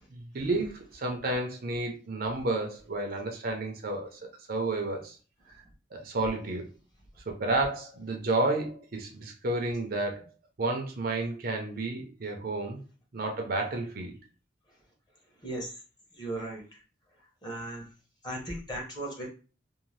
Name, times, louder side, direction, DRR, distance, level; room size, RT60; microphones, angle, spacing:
voice 1, 0.1-4.2 4.5-5.2 5.9-6.6 7.3-10.3 10.6-12.8 13.1-14.2, right 2 dB, 50° right, 3 dB, 0.6 m, -31 dB
voice 2, 16.2-16.6 17.4-17.9 18.2-19.3, right 1 dB, 25° left, -2 dB, 0.9 m, -36 dB
2.6 x 2.1 x 3.1 m, 0.36 s
head